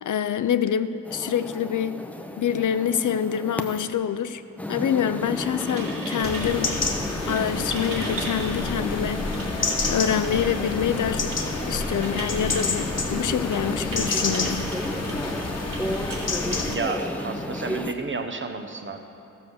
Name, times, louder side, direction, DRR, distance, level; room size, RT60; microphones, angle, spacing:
voice 1, 0.0-2.0 2.4-4.4 4.7-6.8 7.3-9.3 9.9-14.7, left 8 dB, 65° left, 12 dB, 0.5 m, -26 dB
sound 1, 1.1-3.8 4.6-17.9, left 1 dB, 5° left, 0.5 m, -32 dB
sound 2, 5.1-17.8, right 2 dB, 85° right, 2.4 m, -39 dB
sound 3, 6.2-16.8, left 4 dB, 50° left, 1.0 m, -30 dB
voice 2, 16.7-19.0, right 4 dB, 35° right, 6 dB, 0.8 m, -31 dB
15.5 x 6.4 x 6.9 m, 2.7 s
wide cardioid pair, 145°, 33 cm